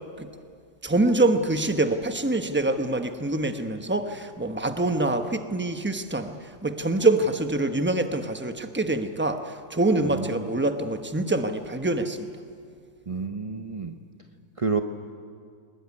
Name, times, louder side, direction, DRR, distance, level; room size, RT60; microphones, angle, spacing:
voice 1, 0.8-12.3, right 2 dB, 10° right, 7 dB, 0.6 m, -25 dB
voice 2, 13.1-13.9 14.6-14.8, right 4 dB, 60° right, 6 dB, 0.3 m, -28 dB
22.5 x 20.5 x 9.7 m, 2.2 s
omnidirectional pair, 2.1 m